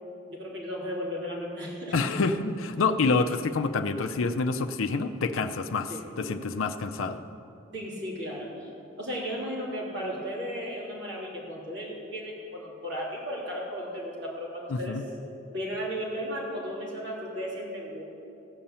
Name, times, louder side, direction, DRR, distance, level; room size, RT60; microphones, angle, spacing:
voice 1, 0.3-2.0 5.9-6.0 7.7-8.7 9.0-15.0 15.4-18.0, equal, 55° right, -4 dB, 3.1 m, -35 dB
voice 2, 1.9-7.2 14.7-15.0, left 4 dB, 80° left, 6 dB, 0.6 m, -27 dB
14.5 x 5.6 x 8.8 m, 2.7 s
head